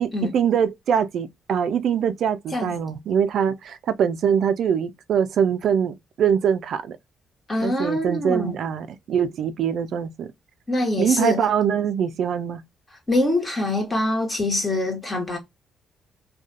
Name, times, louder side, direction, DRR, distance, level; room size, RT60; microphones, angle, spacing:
voice 1, 0.0-7.0 7.6-10.3 11.0-12.6, right 8 dB, 70° right, 0.3 m, -23 dB
voice 2, 7.5-8.5 10.7-11.4 13.1-15.4, left 1 dB, 20° left, 1.1 m, -24 dB
2.4 x 2.3 x 2.5 m
cardioid pair, 90°, 0 cm